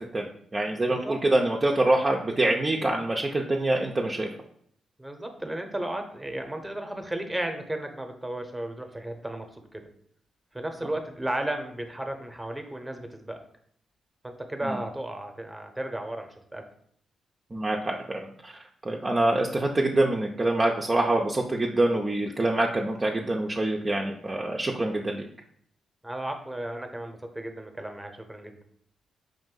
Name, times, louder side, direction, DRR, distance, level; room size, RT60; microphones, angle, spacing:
voice 1, 0.1-4.3 14.7-14.8 17.5-25.3, right 2 dB, 30° right, -1 dB, 0.5 m, -25 dB
voice 2, 0.9-1.2 5.0-9.5 9.7-9.8 10.5-13.4 14.2-16.7 26.0-28.6, right 1 dB, 10° right, 5 dB, 0.9 m, -34 dB
4.9 x 2.5 x 3.8 m, 0.67 s
supercardioid pair, 55°, 0 cm